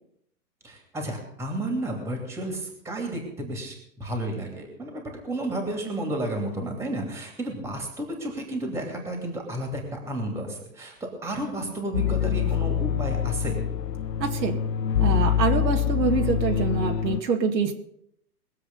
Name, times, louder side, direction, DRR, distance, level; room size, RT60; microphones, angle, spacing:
voice 1, 0.6-3.7 4.0-10.9 11.2-13.5, right 1 dB, 5° right, 3 dB, 2.7 m, -32 dB
sound 1, 11.9-17.2, left 8 dB, 80° left, 1.0 m, -25 dB
voice 2, 14.2-14.6 15.0-17.8, right 5 dB, 85° right, 4 dB, 2.1 m, -25 dB
21.0 x 7.8 x 5.4 m, 0.74 s
hypercardioid pair, 145°, 49 cm